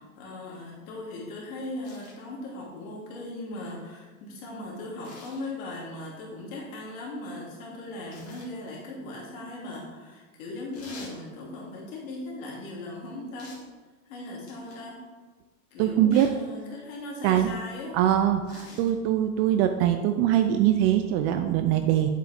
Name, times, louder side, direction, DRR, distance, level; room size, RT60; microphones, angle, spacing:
voice 1, 0.0-13.6 14.1-15.0 15.7-18.0, left 2 dB, 70° left, -3 dB, 2.8 m, -38 dB
sound 1, 1.8-2.2 5.0-5.5 8.1-8.5 10.7-11.2 13.4-13.7 14.5-14.9 16.1-16.4 18.4-18.9 20.3-20.5, left 3 dB, 35° left, 2.2 m, -47 dB
voice 2, 15.8-16.3 17.2-17.5 17.9-22.1, right 11 dB, 45° right, 7 dB, 0.5 m, -22 dB
8.3 x 7.5 x 3.5 m, 1.3 s
supercardioid pair, 130°, 43 cm